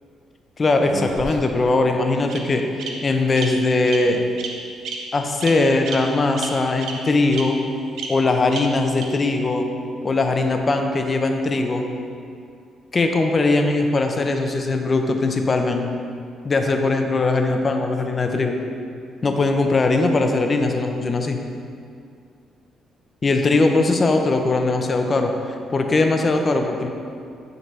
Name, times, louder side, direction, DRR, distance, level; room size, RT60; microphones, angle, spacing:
voice 1, 0.6-4.2 5.1-7.6 8.1-9.7 10.0-11.8 12.9-15.9 16.4-18.5 19.2-21.4 23.2-25.3 25.7-26.9, left 3 dB, 35° left, 4 dB, 0.6 m, -20 dB
Bird vocalization bird call bird song, 0.9-1.6 2.3-2.4 2.8-2.9 3.4-3.5 3.9-4.0 4.4-4.5 4.8-5.0 5.4-5.5 5.9-6.0 6.4-6.5 6.8-6.9 7.3-7.4 8.0-8.1 8.5-8.6 9.0-9.1, right 5 dB, 80° right, 0.7 m, -30 dB
9.4 x 3.9 x 3.3 m, 2.4 s
cardioid pair, 90°, 0 cm